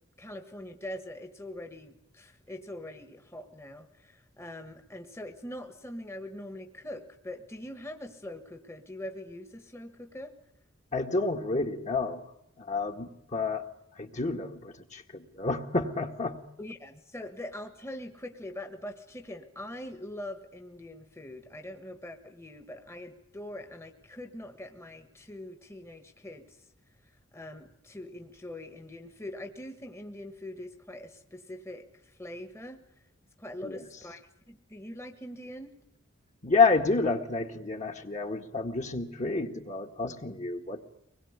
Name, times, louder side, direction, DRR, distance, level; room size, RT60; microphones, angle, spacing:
voice 1, 0.2-10.3 16.6-26.6 27.3-32.8 33.4-35.7, left 1 dB, 15° left, 6 dB, 1.6 m, -43 dB
voice 2, 10.9-12.3 12.6-13.7 14.0-16.4 33.6-33.8 36.4-40.9, left 3 dB, 35° left, 4 dB, 1.9 m, -29 dB
24.5 x 21.0 x 9.7 m, 0.76 s
head